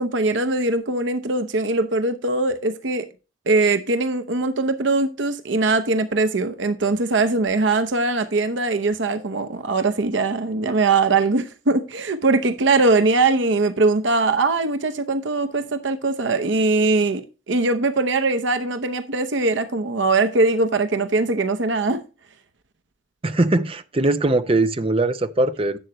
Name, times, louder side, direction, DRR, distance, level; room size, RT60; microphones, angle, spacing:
voice 1, 0.0-3.1 3.5-17.2 17.5-22.0, right 3 dB, 75° right, 0.8 m, -21 dB
voice 2, 23.2-25.8, right 2 dB, 30° right, 0.6 m, -21 dB
11.0 x 7.8 x 3.0 m
head